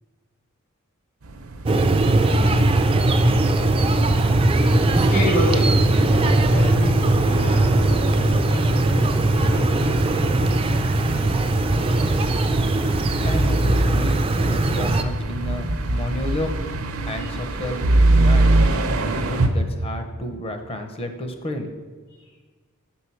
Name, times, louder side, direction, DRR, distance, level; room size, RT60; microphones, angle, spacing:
sound 1, 1.2-19.5, right 2 dB, 70° right, 0.6 m, -25 dB
sound 2, 1.6-15.0, right 2 dB, 25° right, 0.4 m, -19 dB
voice 1, 3.5-13.4 17.2-17.3, equal, 75° left, -8 dB, 2.3 m, -31 dB
voice 2, 13.2-16.6 17.1-18.6 19.0-21.7, left 1 dB, 25° left, 6 dB, 0.7 m, -31 dB
6.5 x 4.5 x 5.6 m, 1.4 s
head